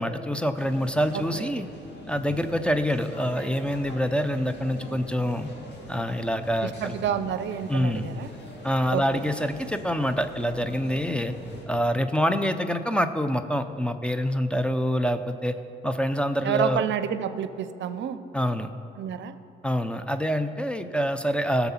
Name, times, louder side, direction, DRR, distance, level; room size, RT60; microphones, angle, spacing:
voice 1, 0.0-1.7 2.1-5.5 5.9-6.9 7.7-8.1 8.6-11.3 11.7-15.6 15.8-16.8 18.3-18.7 19.6-21.7, equal, 5° left, 10 dB, 0.6 m, -26 dB
sound 1, 0.5-11.7, left 1 dB, 60° left, 2.5 m, -42 dB
voice 2, 1.1-1.5 6.6-8.3 8.9-9.2 16.4-18.2 19.0-19.4, right 9 dB, 65° right, 12 dB, 0.6 m, -29 dB
15.5 x 7.0 x 5.8 m, 2.7 s
cardioid pair, 90°, 20 cm